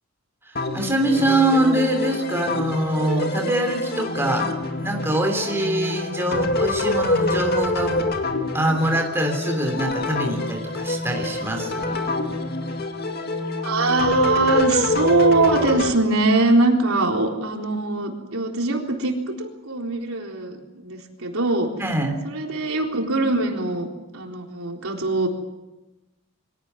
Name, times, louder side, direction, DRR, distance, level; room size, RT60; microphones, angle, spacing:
voice 1, 0.4-4.5 4.8-8.0 8.5-12.0 21.8-22.2, right 1 dB, 10° right, 3 dB, 3.1 m, -24 dB
sound 1, 0.6-15.9, left 2 dB, 45° left, 2.2 m, -26 dB
voice 2, 13.6-21.7 22.2-23.9 24.1-25.3, right 2 dB, 80° right, 1 dB, 4.0 m, -22 dB
24.0 x 17.0 x 9.3 m, 1.0 s
head